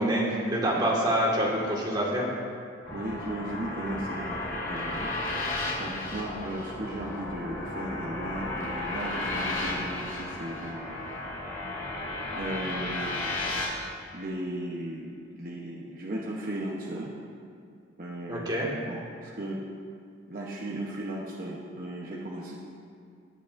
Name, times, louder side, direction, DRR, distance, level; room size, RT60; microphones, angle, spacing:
voice 1, 0.0-2.2 18.3-18.7, right 1 dB, 20° right, -5 dB, 1.8 m, -26 dB
sound 1, 2.8-13.7, left 2 dB, 85° left, 2.7 m, -34 dB
voice 2, 2.9-4.4 4.7-5.2 5.8-11.0 12.3-13.2 14.1-17.1 18.0-18.5 18.8-19.6 20.3-22.5, right 1 dB, 45° right, -3 dB, 0.9 m, -36 dB
17.0 x 8.7 x 2.6 m, 2.3 s
head